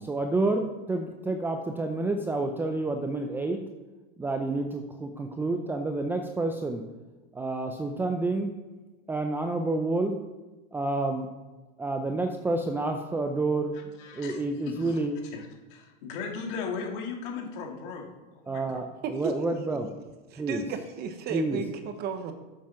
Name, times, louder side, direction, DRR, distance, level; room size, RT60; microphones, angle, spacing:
voice 1, 0.0-3.6 4.2-6.8 7.3-8.5 9.1-10.2 10.7-11.3 11.8-15.2 18.5-19.9 20.4-20.6 21.3-21.6, right 2 dB, 5° right, 5 dB, 0.5 m, -29 dB
voice 2, 13.7-15.0 15.3-18.1 18.3-18.8, left 5 dB, 60° left, 1 dB, 2.4 m, -37 dB
voice 3, 19.0-19.5 20.3-22.3, right 6 dB, 35° right, 8 dB, 1.1 m, -34 dB
7.4 x 7.2 x 5.8 m, 1.2 s
supercardioid pair, 135°, 29 cm